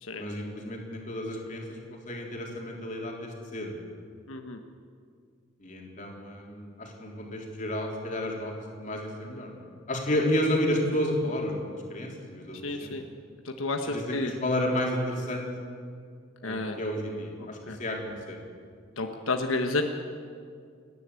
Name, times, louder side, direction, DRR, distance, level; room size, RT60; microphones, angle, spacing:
voice 1, 0.1-3.8 5.6-8.5 8.8-9.6 9.9-12.9 13.9-15.5 16.4-18.4, left 1 dB, 40° left, 0 dB, 3.5 m, -31 dB
voice 2, 4.3-4.6 12.6-13.0 13.4-14.3 16.4-16.8 17.7-17.8 19.0-19.8, left 2 dB, 90° left, 4 dB, 1.3 m, -30 dB
29.5 x 11.0 x 8.4 m, 2.2 s
head